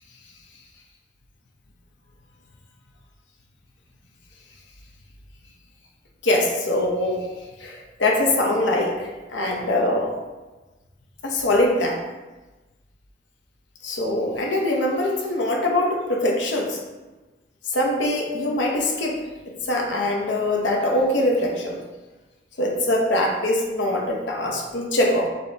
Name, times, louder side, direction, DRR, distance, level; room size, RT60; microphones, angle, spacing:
voice 1, 6.2-7.3 7.6-10.1 11.2-12.0 13.8-16.8 17.6-19.2 19.6-21.8 22.6-25.3, left 1 dB, 70° left, 0 dB, 0.8 m, -23 dB
5.1 x 2.9 x 3.3 m, 1.2 s
head